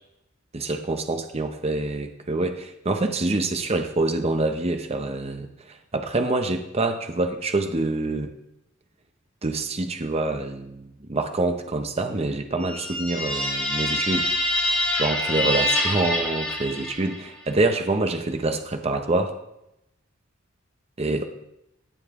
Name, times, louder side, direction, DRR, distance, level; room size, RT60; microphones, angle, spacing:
voice 1, 0.5-8.3 9.4-14.3 15.0-19.4 21.0-21.3, right 2 dB, 30° right, 6 dB, 0.8 m, -26 dB
sound 1, 12.6-17.3, left 1 dB, 5° left, 3.6 m, -25 dB
16.0 x 7.1 x 3.7 m, 0.85 s
head